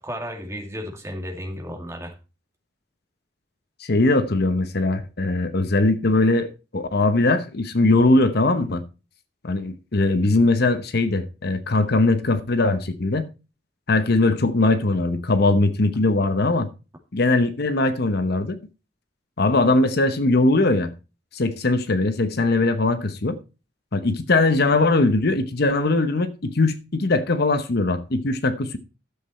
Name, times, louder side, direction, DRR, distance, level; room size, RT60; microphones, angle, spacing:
voice 1, 0.0-2.2, equal, 15° right, 2.4 m, -33 dB
voice 2, 3.8-6.5 6.7-8.8 9.4-13.3 13.9-16.7 17.1-18.6 19.4-20.9 21.3-23.4 23.9-28.8, left 2 dB, 60° left, 0.9 m, -20 dB
12.0 x 7.7 x 4.2 m
head